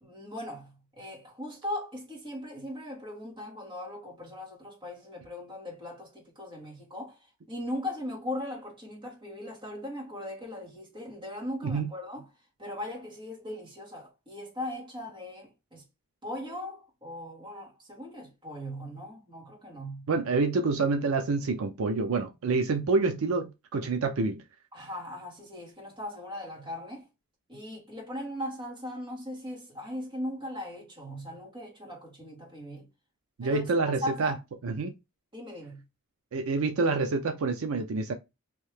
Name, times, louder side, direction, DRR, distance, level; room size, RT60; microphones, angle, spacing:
voice 1, 0.0-12.2 12.6-15.8 16.2-20.1 24.7-27.1 27.5-32.9 33.4-33.6 34.0-34.4 35.3-35.8, left 1 dB, 20° right, 1.5 m, -39 dB
voice 2, 20.1-24.4 33.4-34.3 34.6-34.9 36.3-38.1, right 3 dB, 70° right, 0.5 m, -27 dB
3.0 x 2.7 x 3.3 m
head